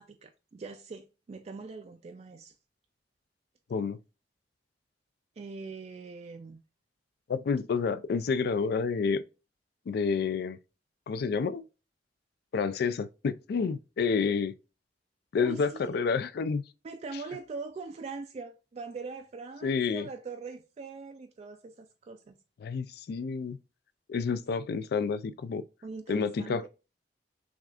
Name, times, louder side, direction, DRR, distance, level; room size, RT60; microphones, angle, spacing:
voice 1, 0.0-2.5 5.4-6.6 15.4-15.8 16.8-22.4 25.8-26.6, right 4 dB, 40° right, 0.3 m, -42 dB
voice 2, 7.3-9.2 9.9-10.6 11.1-11.7 12.5-14.5 15.3-16.6 19.6-20.1 22.6-23.6 24.1-25.6 26.1-26.7, left 5 dB, 60° left, 0.3 m, -29 dB
6.0 x 2.4 x 2.4 m
head